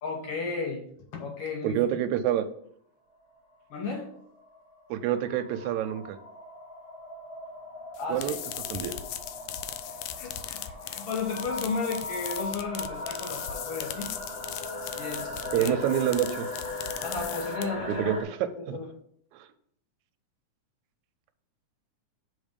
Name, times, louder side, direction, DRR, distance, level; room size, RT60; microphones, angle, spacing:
voice 1, 0.0-0.8 1.1-2.0 3.7-4.1 8.0-8.3 10.2-14.1 15.0-15.8 17.0-18.1 18.4-18.9, left 4 dB, 65° left, 1 dB, 1.7 m, -34 dB
voice 2, 1.6-2.5 4.9-6.2 8.1-8.3 8.7-9.0 15.5-16.5 17.9-18.2 18.7-18.8, right 11 dB, 80° right, 9 dB, 1.9 m, -27 dB
sound 1, 3.2-18.2, left 2 dB, 20° left, 1.8 m, -39 dB
sound 2, 7.9-17.9, left 11 dB, 85° left, 1.5 m, -39 dB
6.8 x 4.0 x 5.1 m, 0.68 s
omnidirectional pair, 3.5 m